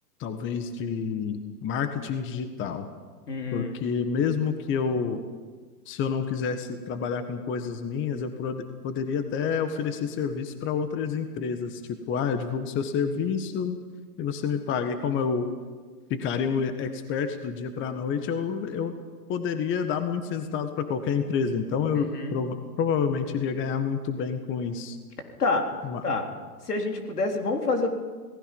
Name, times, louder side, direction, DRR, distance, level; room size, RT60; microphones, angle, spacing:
voice 1, 0.2-2.8 3.5-5.2 5.8-11.8 12.1-13.8 14.2-15.5 16.1-18.9 19.3-25.0 25.8-26.0, left 6 dB, 25° left, 8 dB, 1.6 m, -28 dB
voice 2, 3.3-3.7 22.0-22.4 25.4-25.6 26.0-26.2 26.6-27.9, left 3 dB, 80° left, 3 dB, 3.9 m, -27 dB
28.0 x 19.0 x 5.5 m, 1.4 s
hypercardioid pair, 115°, 45 cm